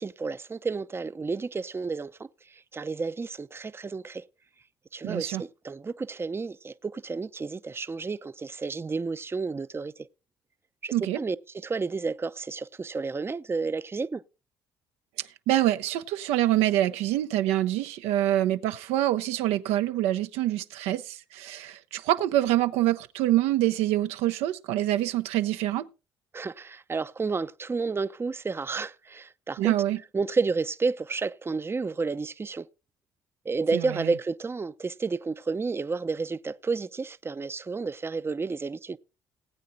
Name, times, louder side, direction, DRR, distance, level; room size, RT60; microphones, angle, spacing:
voice 1, 0.0-4.2 4.9-9.9 10.8-11.4 11.6-14.2 26.3-29.7 30.1-32.7 33.4-39.0, right 4 dB, 20° right, 0.6 m, -31 dB
voice 2, 5.0-5.4 10.9-11.2 15.2-25.9 29.6-30.0 33.7-34.1, right 14 dB, 75° right, 0.6 m, -26 dB
19.0 x 8.4 x 2.6 m
hypercardioid pair, 55°, 11 cm